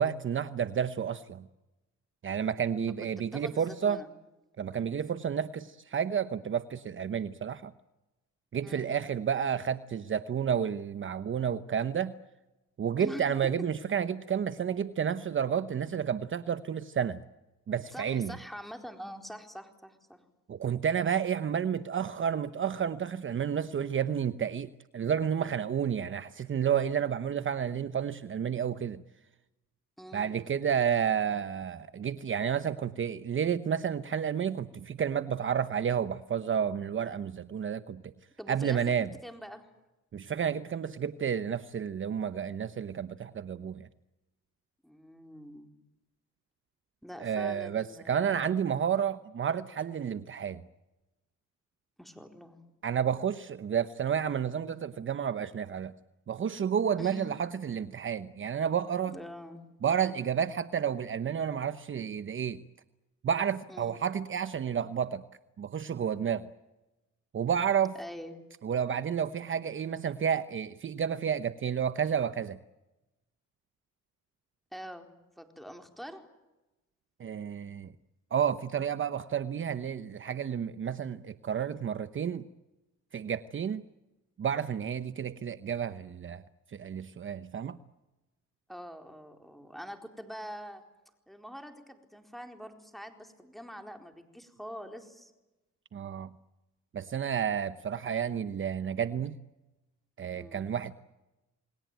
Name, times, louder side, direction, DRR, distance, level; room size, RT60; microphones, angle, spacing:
voice 1, 0.0-1.4 2.2-4.0 4.6-7.7 8.5-12.1 12.8-17.2 17.7-18.4 20.5-29.0 30.1-38.1 38.5-39.1 40.1-43.9 47.2-50.6 52.8-55.9 56.3-59.2 59.8-62.6 63.2-65.2 65.6-66.5 67.3-67.9 68.6-72.6 77.2-77.9 78.3-82.5 83.1-83.8 84.4-86.4 86.7-87.8 95.9-96.3 96.9-99.4 100.2-100.9, right 8 dB, 40° right, 12 dB, 0.9 m, -31 dB
voice 2, 3.2-4.1 8.6-9.0 13.0-13.3 17.9-20.2 30.0-30.4 38.4-39.7 44.8-45.7 47.0-48.5 52.0-52.6 57.0-57.4 59.1-59.6 63.7-64.0 67.9-68.3 74.7-75.1 75.4-76.2 88.7-90.8 91.3-95.3 100.3-100.7, equal, ahead, 5 dB, 4.2 m, -45 dB
29.0 x 20.5 x 9.2 m, 1.0 s
cardioid pair, 90°, 30 cm